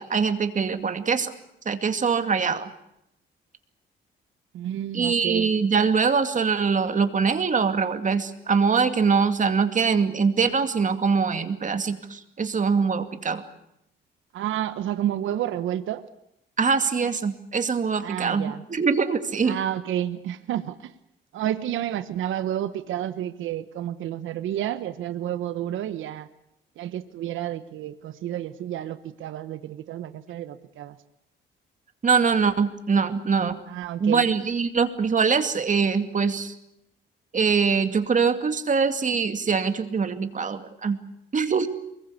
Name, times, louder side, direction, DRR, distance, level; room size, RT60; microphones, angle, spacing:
voice 1, 0.0-1.3 1.7-2.7 4.9-13.4 16.6-19.6 32.0-33.6 34.0-36.5 37.3-41.0 41.3-41.7, right 5 dB, 40° right, 8 dB, 2.4 m, -23 dB
voice 2, 4.5-5.5 14.3-16.0 18.0-18.6 19.5-20.9 21.3-26.3 26.8-31.0 33.7-34.2, right 11 dB, 80° right, 12 dB, 1.2 m, -30 dB
24.0 x 22.0 x 8.3 m, 0.81 s
cardioid pair, 90°, 20 cm